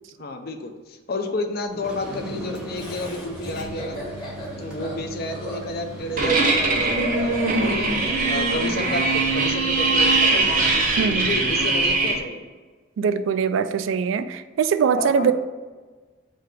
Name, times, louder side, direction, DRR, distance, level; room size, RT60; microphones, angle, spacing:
voice 1, 0.2-4.0 4.5-7.9 8.3-10.7 11.1-12.5 15.0-15.3, left 2 dB, 50° left, 5 dB, 0.5 m, -31 dB
sound 1, 1.7-11.7, right 1 dB, 5° right, 0.7 m, -38 dB
Laughter, 2.8-9.1, equal, 20° left, 1.0 m, -36 dB
sound 2, 6.2-12.2, right 3 dB, 45° right, 0.7 m, -21 dB
voice 2, 11.0-11.3 13.0-15.3, right 6 dB, 80° right, 12 dB, 0.3 m, -22 dB
3.9 x 2.8 x 4.8 m, 1.3 s
head